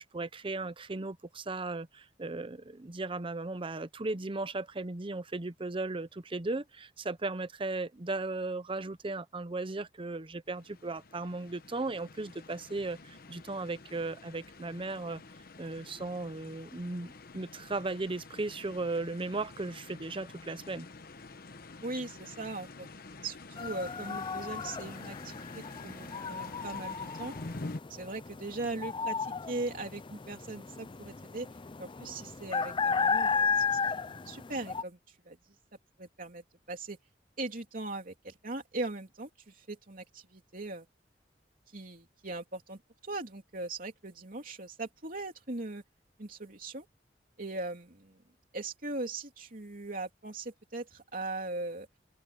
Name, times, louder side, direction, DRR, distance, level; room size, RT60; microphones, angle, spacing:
voice 1, 0.0-15.2 15.6-20.9, right 2 dB, 30° right, 0.8 m, -36 dB
sound 1, 10.5-27.8, left 3 dB, 55° left, 1.1 m, -48 dB
voice 2, 21.8-22.9 23.2-25.4 25.8-27.3 27.9-31.5 31.8-35.5 36.0-37.0 37.4-40.9 41.7-45.8 46.2-46.8 47.4-48.2 48.5-51.9, right 2 dB, 50° right, 3.1 m, -40 dB
sound 2, 23.6-34.8, left 5 dB, 30° left, 0.5 m, -34 dB
open air
head